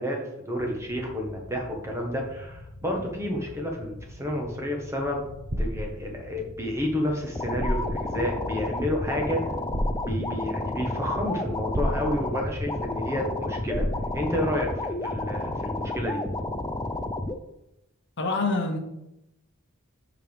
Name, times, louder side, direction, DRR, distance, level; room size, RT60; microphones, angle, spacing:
voice 1, 0.0-5.2 5.6-9.4 10.0-13.8 14.1-16.2, left 1 dB, 15° right, 0 dB, 1.3 m, -30 dB
sound 1, 0.6-15.6, left 1 dB, 75° left, 0.8 m, -45 dB
sound 2, 5.5-5.9 7.2-7.3 7.6-8.0 9.7-10.1 11.7-12.1 13.7-14.1, equal, 30° right, 0.9 m, -28 dB
sound 3, 7.4-17.4, left 2 dB, 15° left, 0.4 m, -31 dB
voice 2, 18.2-18.8, left 3 dB, 55° left, 4 dB, 1.0 m, -25 dB
8.7 x 5.2 x 3.5 m, 0.87 s
head